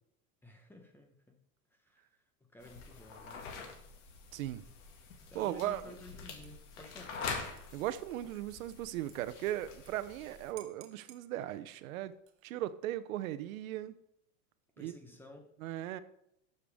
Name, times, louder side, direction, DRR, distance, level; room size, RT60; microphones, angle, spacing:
voice 1, 0.4-1.4 1.8-2.2 2.5-3.8 5.3-7.2 14.8-15.4, left 1 dB, 5° left, 0.9 m, -53 dB
sound 1, 2.6-10.5, left 5 dB, 60° left, 2.0 m, -45 dB
voice 2, 4.3-4.6 5.3-5.8 7.7-12.1 12.4-13.9 14.8-14.9 15.6-16.0, right 13 dB, 80° right, 0.7 m, -37 dB
Dishes pots and pans / Liquid, 5.8-6.1 6.4-9.9 10.2-10.3 10.6-11.2 12.1-12.6, right 11 dB, 30° right, 0.9 m, -59 dB
12.5 x 6.6 x 3.5 m
supercardioid pair, 150°, 41 cm